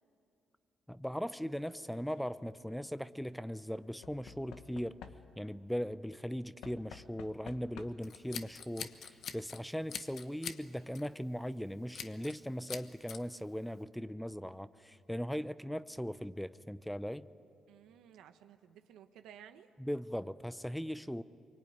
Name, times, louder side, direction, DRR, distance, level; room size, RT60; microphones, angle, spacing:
voice 1, 0.9-5.0 5.4-17.3 19.8-21.2, equal, ahead, 14 dB, 0.6 m, -39 dB
Knock / Wood, 1.8-2.3 4.0-5.6 6.6-8.2 9.3-9.4 9.6-9.7, left 8 dB, 90° left, 1.2 m, -53 dB
Scissors, 8.0-9.6 9.9-10.6 10.9-11.2 11.9-12.4 12.7-13.2, left 7 dB, 65° left, 1.1 m, -43 dB
voice 2, 17.7-19.7, right 9 dB, 85° right, 9 dB, 1.2 m, -56 dB
24.5 x 24.0 x 9.4 m, 2.6 s
cardioid pair, 90°, 0 cm